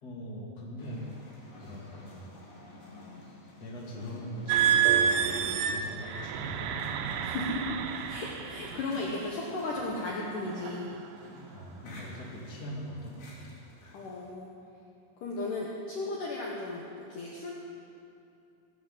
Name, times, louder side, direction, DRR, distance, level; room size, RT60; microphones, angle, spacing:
voice 1, 0.0-1.1 1.6-2.4 3.6-7.0 7.3-7.5 11.5-13.5 13.8-14.0, equal, 30° left, -4 dB, 2.0 m, -42 dB
sound 1, 0.8-14.3, left 1 dB, 60° left, 4.9 m, -50 dB
sound 2, 4.5-9.0 9.6-9.9 10.5-10.8, right 8 dB, 80° right, 2.7 m, -29 dB
voice 2, 7.2-7.8 8.1-10.9 13.9-14.5 15.2-17.5, left 2 dB, 75° left, -3 dB, 1.9 m, -35 dB
18.0 x 7.8 x 7.5 m, 2.6 s
omnidirectional pair, 5.7 m